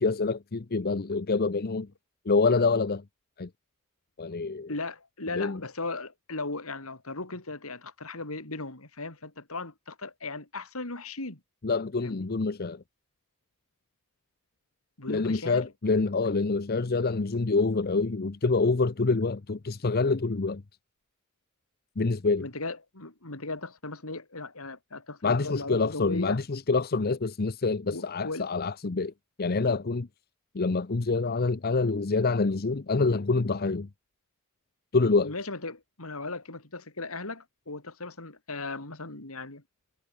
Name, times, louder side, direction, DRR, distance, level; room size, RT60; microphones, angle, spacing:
voice 1, 0.0-1.9 2.3-3.0 3.4-3.5 4.2-4.7 5.3-5.6 11.6-12.8 15.1-20.6 22.0-22.5 25.2-29.1 29.4-30.1 30.5-33.9 34.9-35.3, left 3 dB, 45° left, 0.7 m, -26 dB
voice 2, 4.7-11.4 12.0-12.3 15.0-15.7 22.4-26.4 27.9-28.5 35.2-39.6, left 3 dB, 80° left, 3.9 m, -37 dB
head